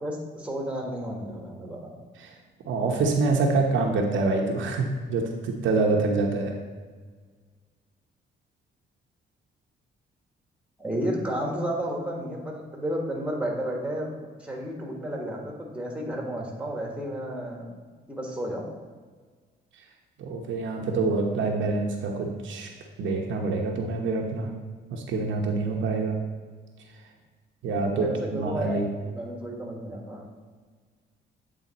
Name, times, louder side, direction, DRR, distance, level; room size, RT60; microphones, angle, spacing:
voice 1, 0.0-1.9 10.8-17.7 18.1-18.7 28.0-28.8 29.0-30.2, right 1 dB, 5° right, 0 dB, 1.6 m, -32 dB
voice 2, 2.6-6.5 20.2-22.7 23.0-24.5 24.9-26.2 27.6-28.9, right 3 dB, 75° right, 1 dB, 0.9 m, -26 dB
8.5 x 3.5 x 4.1 m, 1.5 s
cardioid pair, 90°, 20 cm